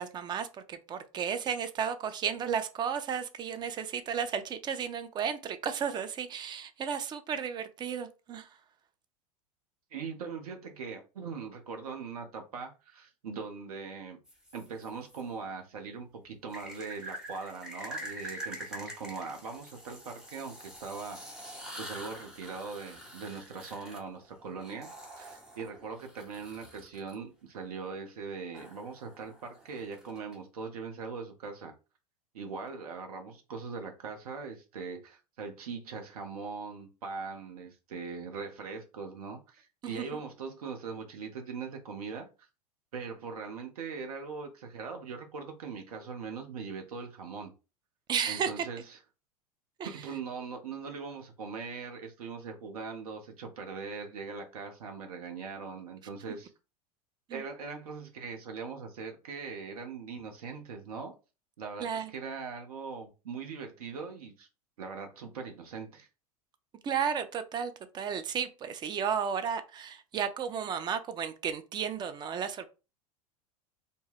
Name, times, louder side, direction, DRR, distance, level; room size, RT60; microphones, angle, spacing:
voice 1, 0.0-8.5 39.8-40.0 48.1-48.7 49.8-49.9 57.3-57.4 61.8-62.1 66.8-72.7, right 7 dB, 25° right, 0.3 m, -33 dB
voice 2, 9.9-14.2 14.5-21.4 21.8-31.7 32.3-42.3 42.9-47.5 48.3-49.0 49.8-56.5 57.3-61.1 61.6-64.5 64.8-66.1, right 5 dB, 70° right, 0.7 m, -41 dB
sound 1, 14.3-15.2 16.5-27.1 28.5-30.4, equal, 5° right, 0.8 m, -46 dB
2.1 x 2.0 x 3.3 m
figure-of-eight pair, 85°, 20 cm